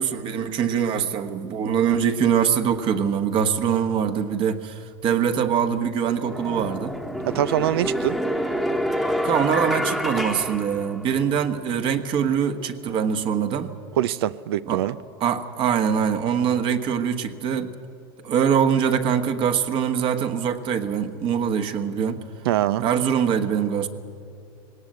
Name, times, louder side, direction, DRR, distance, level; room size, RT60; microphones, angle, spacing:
voice 1, 0.0-6.9 9.2-13.7 14.7-14.8 15.2-17.7 18.2-22.2 22.8-23.9, right 8 dB, 40° right, 7 dB, 1.3 m, -23 dB
sound 1, 5.5-5.6 6.2-11.4, equal, ahead, 1.2 m, -27 dB
voice 2, 7.2-8.2 14.0-14.9 22.5-22.8, right 12 dB, 75° right, 17 dB, 0.5 m, -23 dB
19.0 x 18.0 x 7.9 m, 2.4 s
supercardioid pair, 115°, 13 cm